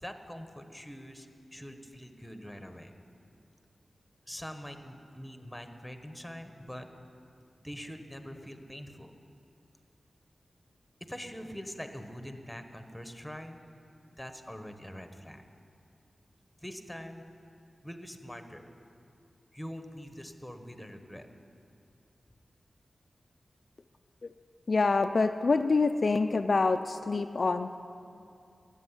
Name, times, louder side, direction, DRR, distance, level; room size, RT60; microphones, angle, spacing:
voice 1, 0.0-2.9 4.3-6.9 7.6-9.1 11.1-13.6 14.2-15.4 16.6-17.2 17.8-18.6 19.5-21.3, equal, 5° left, 7 dB, 1.1 m, -44 dB
voice 2, 24.7-27.7, left 3 dB, 50° left, 7 dB, 0.4 m, -26 dB
13.5 x 8.1 x 9.8 m, 2.5 s
wide cardioid pair, 95°, 0 cm